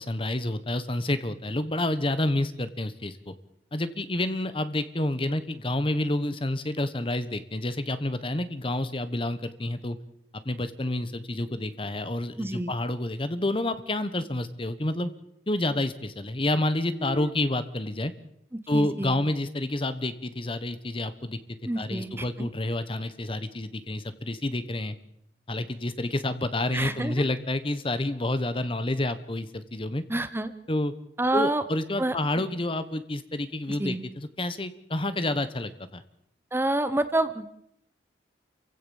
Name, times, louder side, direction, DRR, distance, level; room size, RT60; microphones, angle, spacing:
voice 1, 0.0-3.3 3.7-10.0 10.4-15.1 15.5-18.1 18.7-21.4 21.8-24.9 25.5-30.0 30.7-30.9 31.3-36.0, left 1 dB, 30° left, 12 dB, 1.2 m, -29 dB
voice 2, 12.4-12.7 17.0-17.3 18.7-19.2 21.7-22.5 26.7-27.1 30.1-30.5 31.2-31.6 32.0-32.1 33.8-34.0 36.5-37.5, right 1 dB, 15° right, 11 dB, 0.9 m, -28 dB
28.5 x 16.0 x 7.2 m, 0.75 s
head